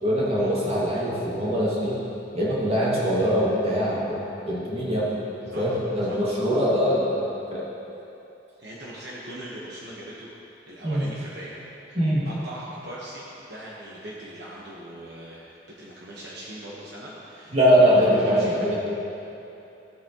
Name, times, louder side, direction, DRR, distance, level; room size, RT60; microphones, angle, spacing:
voice 1, 0.0-2.0 2.3-5.1 5.5-7.7 10.8-11.1 11.9-12.3 17.5-18.8, equal, 30° right, -7 dB, 2.1 m, -22 dB
voice 2, 8.6-10.3 10.7-11.6 11.9-12.0 12.2-18.8, right 1 dB, 60° right, -6 dB, 1.3 m, -40 dB
15.5 x 8.2 x 3.0 m, 2.9 s
head